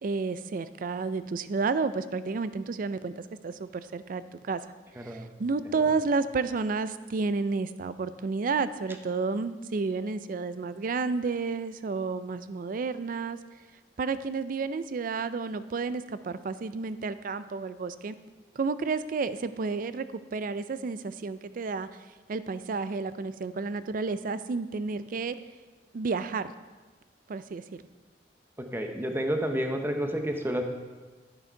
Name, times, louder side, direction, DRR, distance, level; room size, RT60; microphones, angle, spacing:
voice 1, 0.0-4.6 5.0-13.4 14.0-18.1 18.6-21.9 22.3-25.3 25.9-26.5 27.3-27.8, right 4 dB, 50° right, 14 dB, 0.4 m, -31 dB
voice 2, 28.6-30.6, equal, 15° right, 4 dB, 0.8 m, -30 dB
11.0 x 6.4 x 4.5 m, 1.3 s
head